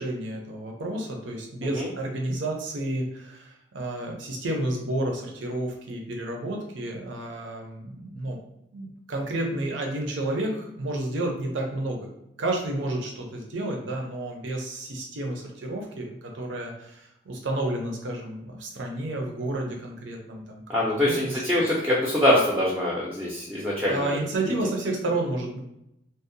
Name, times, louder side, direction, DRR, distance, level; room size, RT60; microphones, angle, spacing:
voice 1, 0.0-8.4 8.7-12.1 12.4-20.6 21.0-21.4 23.5-25.6, right 1 dB, 85° right, 1 dB, 0.6 m, -31 dB
voice 2, 20.7-24.0, left 1 dB, 10° right, -5 dB, 0.4 m, -23 dB
2.6 x 2.0 x 2.6 m, 0.82 s
head